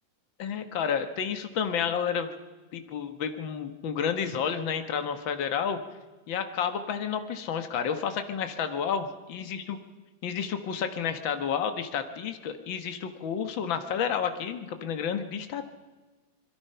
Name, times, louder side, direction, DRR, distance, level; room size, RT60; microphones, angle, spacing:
voice 1, 0.4-2.3 2.7-5.8 6.3-9.8 10.2-15.7, left 7 dB, 75° left, 8 dB, 1.1 m, -30 dB
26.5 x 22.5 x 5.7 m, 1.2 s
omnidirectional pair, 4.3 m